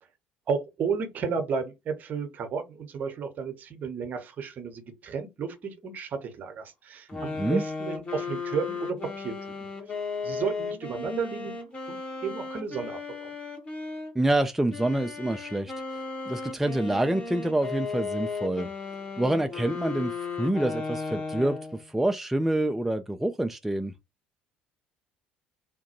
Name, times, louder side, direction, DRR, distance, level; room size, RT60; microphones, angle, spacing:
voice 1, 0.5-9.7 10.2-11.5 11.9-13.3, right 5 dB, 40° right, 0.8 m, -33 dB
sound 1, 7.1-14.1 14.7-21.9, left 4 dB, 30° left, 1.1 m, -35 dB
voice 2, 7.1-7.6 14.2-15.7 16.3-18.7 19.2-21.6 21.9-23.9, right 1 dB, 5° right, 0.3 m, -27 dB
3.5 x 2.2 x 2.8 m
figure-of-eight pair, 55°, 4 cm